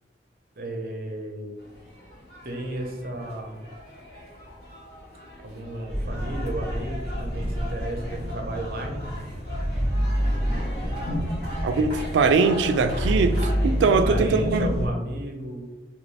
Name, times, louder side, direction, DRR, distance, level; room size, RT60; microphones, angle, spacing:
voice 1, 0.6-1.5 2.4-3.6 5.4-9.0 13.8-15.6, right 1 dB, 50° right, 0.6 m, -33 dB
sound 1, 1.6-13.9, left 1 dB, 55° left, 1.2 m, -41 dB
sound 2, 5.9-14.9, equal, 35° left, 1.0 m, -28 dB
voice 2, 11.6-14.7, right 4 dB, 85° right, 0.3 m, -21 dB
2.9 x 2.6 x 3.1 m
head